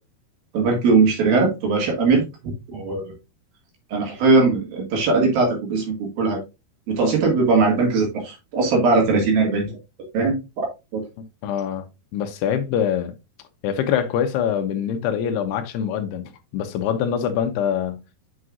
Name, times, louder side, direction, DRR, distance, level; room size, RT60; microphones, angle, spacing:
voice 1, 0.5-3.0 3.9-5.9 6.2-6.4 6.9-9.7 10.1-10.7 10.9-11.0, right 4 dB, 65° right, 3.6 m, -20 dB
voice 2, 11.4-11.9 12.1-13.1 13.6-18.0, left 8 dB, 85° left, 2.8 m, -24 dB
7.8 x 6.6 x 2.5 m
omnidirectional pair, 4.8 m